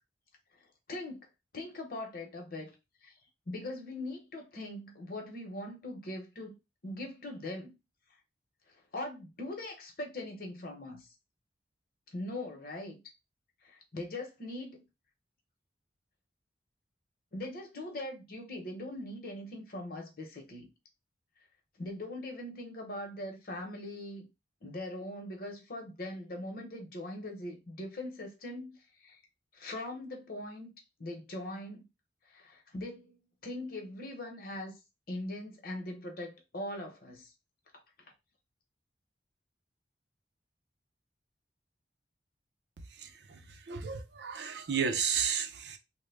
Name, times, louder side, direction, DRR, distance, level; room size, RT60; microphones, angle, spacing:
voice 1, 1.5-2.7 3.0-3.1 3.5-6.5 6.8-7.7 8.9-11.1 12.1-13.0 13.6-14.8 17.3-20.7 21.8-24.3 24.6-29.2 29.5-30.7 31.0-31.9 32.3-34.8 35.1-37.3, left 1 dB, 55° left, 1.0 m, -41 dB
voice 2, 42.9-45.8, right 7 dB, 75° right, 0.5 m, -33 dB
3.2 x 2.2 x 3.4 m
head